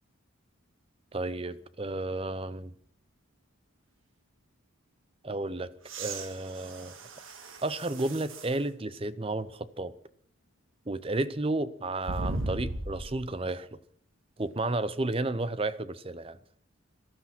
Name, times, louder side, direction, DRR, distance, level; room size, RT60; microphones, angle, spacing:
voice 1, 1.1-2.7 5.2-5.7 6.0-7.0 7.6-9.9 10.9-13.8 14.4-16.4, right 2 dB, 25° right, 0.6 m, -32 dB
sound 1, 5.8-8.6 9.2-9.3 12.0-13.3 15.1-15.2, right 2 dB, 75° right, 1.7 m, -37 dB
18.5 x 12.0 x 6.0 m
head